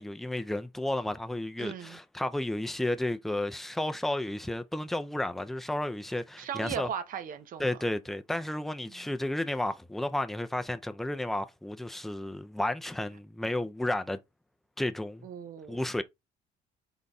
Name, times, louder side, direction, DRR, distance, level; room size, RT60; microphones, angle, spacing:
voice 1, 0.0-6.9 7.6-14.2 14.8-15.3 15.7-16.0, left 1 dB, ahead, 0.4 m, -32 dB
voice 2, 1.6-2.0 6.4-7.7 8.9-9.1 15.2-15.8, right 8 dB, 55° right, 0.7 m, -38 dB
3.9 x 3.7 x 2.3 m
cardioid pair, 110°, 17 cm